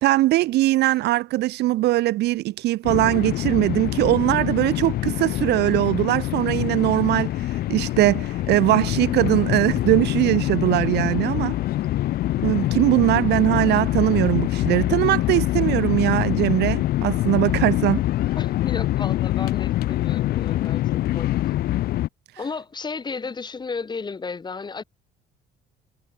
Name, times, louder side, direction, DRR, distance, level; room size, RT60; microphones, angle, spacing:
voice 1, 0.0-7.3 7.7-11.6 12.4-18.1, right 17 dB, 80° right, 1.9 m, -21 dB
sound 1, 2.8-22.1, left 15 dB, 65° left, 0.7 m, -24 dB
voice 2, 18.4-21.3 22.4-24.8, left 4 dB, 25° left, 3.6 m, -33 dB
cardioid pair, 110°, 17 cm